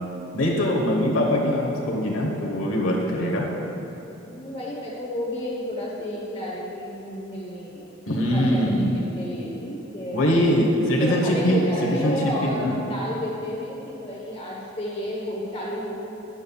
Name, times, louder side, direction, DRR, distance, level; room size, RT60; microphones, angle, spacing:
voice 1, 0.3-3.5 8.1-8.9 10.1-12.7, equal, 85° left, -2 dB, 1.1 m, -22 dB
voice 2, 4.2-7.9 8.2-8.6 8.9-10.7 11.0-16.0, left 1 dB, 30° left, -4 dB, 1.0 m, -32 dB
12.0 x 8.9 x 2.3 m, 3.0 s
head